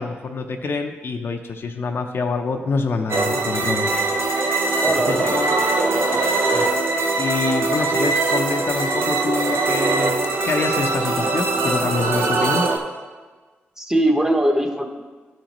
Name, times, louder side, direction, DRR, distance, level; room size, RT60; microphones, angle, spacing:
voice 1, 0.0-4.0 5.1-5.6 6.5-6.7 7.2-12.7, left 4 dB, 60° left, 3 dB, 0.6 m, -26 dB
sound 1, 3.1-12.8, right 3 dB, 70° right, 0.9 m, -21 dB
voice 2, 4.8-5.3 5.8-6.2 13.8-14.9, right 1 dB, 10° right, 3 dB, 1.1 m, -21 dB
12.5 x 5.1 x 3.0 m, 1.4 s
cardioid pair, 60°, 4 cm